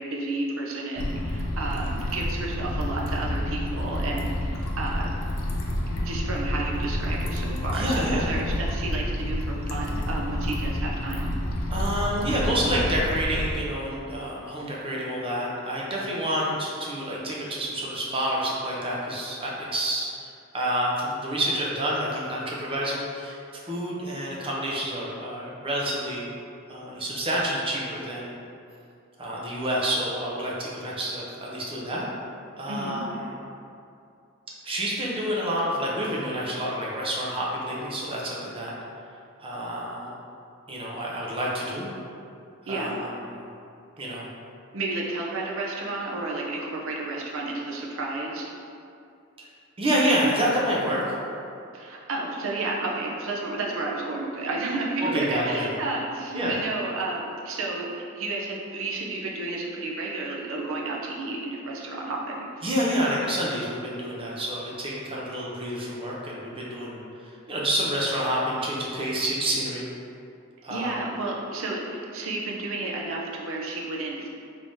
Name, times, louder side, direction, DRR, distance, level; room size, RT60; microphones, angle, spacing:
voice 1, 0.0-5.1 6.0-11.3 32.7-33.0 42.7-43.0 44.7-48.5 51.7-62.6 70.7-74.3, right 2 dB, 70° right, -2 dB, 0.5 m, -31 dB
sound 1, 1.0-13.6, left 1 dB, 70° left, 0.4 m, -29 dB
voice 2, 7.7-8.3 11.7-20.1 20.5-26.3 26.7-28.3 29.2-32.1 32.6-33.3 34.6-38.7 39.4-40.1 40.7-41.9 42.6-43.4 44.0-44.3 49.8-51.2 55.0-55.7 56.3-56.5 62.6-69.8 70.6-71.0, equal, 25° right, -4 dB, 0.6 m, -28 dB
3.4 x 3.2 x 2.6 m, 2.5 s
head